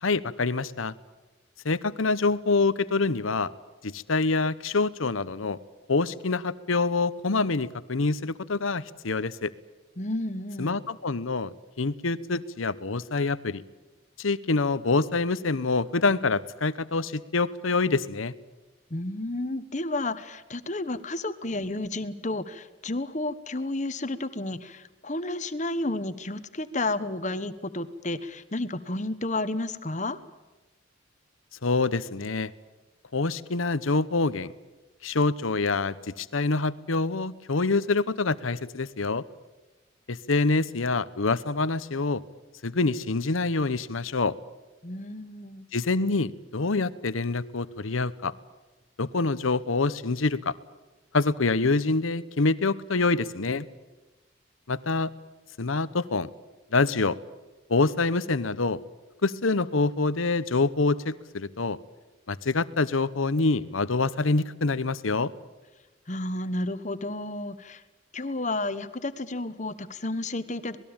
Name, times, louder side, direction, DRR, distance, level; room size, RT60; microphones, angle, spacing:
voice 1, 0.0-0.9 1.6-3.5 3.8-5.6 5.9-9.5 10.6-13.6 14.2-18.3 31.6-32.5 33.1-34.5 35.0-39.2 40.1-42.2 42.6-44.3 45.7-48.3 49.0-50.5 51.1-53.7 54.7-55.1 55.6-56.3 56.7-57.2 57.7-58.8 59.2-61.8 62.3-65.3, left 3 dB, 85° left, 16 dB, 0.9 m, -26 dB
voice 2, 10.0-10.8 18.9-30.2 44.8-45.7 66.1-67.8 68.1-70.8, left 2 dB, 35° left, 13 dB, 1.2 m, -31 dB
27.0 x 19.5 x 8.9 m, 1.1 s
head